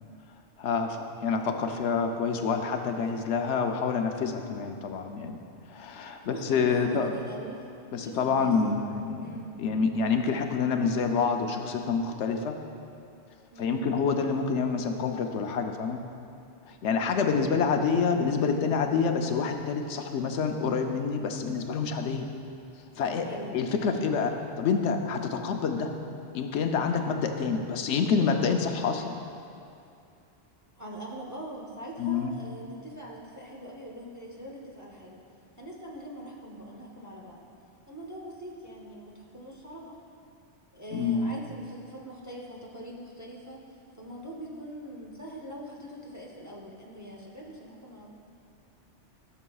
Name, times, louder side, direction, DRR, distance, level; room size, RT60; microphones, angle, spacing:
voice 1, 0.6-5.4 5.7-7.1 7.9-12.6 13.6-16.0 16.7-22.3 23.0-23.3 23.5-25.9 26.3-29.2 32.0-32.3 40.9-41.4, left 5 dB, 75° left, 5 dB, 0.9 m, -27 dB
voice 2, 6.2-7.6 8.0-8.6 9.2-9.6 13.5-13.9 23.2-23.6 30.8-35.2 35.5-37.4 37.9-40.0 40.7-43.6 44.0-48.1, right 1 dB, 20° right, -2 dB, 0.6 m, -42 dB
14.0 x 6.9 x 2.3 m, 2.5 s
omnidirectional pair, 1.2 m